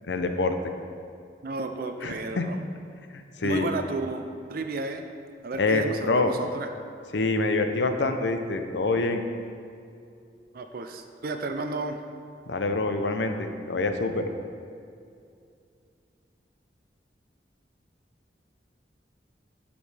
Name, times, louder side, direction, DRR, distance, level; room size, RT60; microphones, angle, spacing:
voice 1, 0.1-0.6 2.0-2.4 3.4-3.7 5.6-6.3 7.1-9.2 12.5-14.2, left 3 dB, 75° left, 7 dB, 0.6 m, -26 dB
voice 2, 1.4-2.6 3.4-5.0 5.4-6.7 10.5-12.0, right 3 dB, 55° right, 6 dB, 0.5 m, -33 dB
12.0 x 5.2 x 3.4 m, 2.4 s
head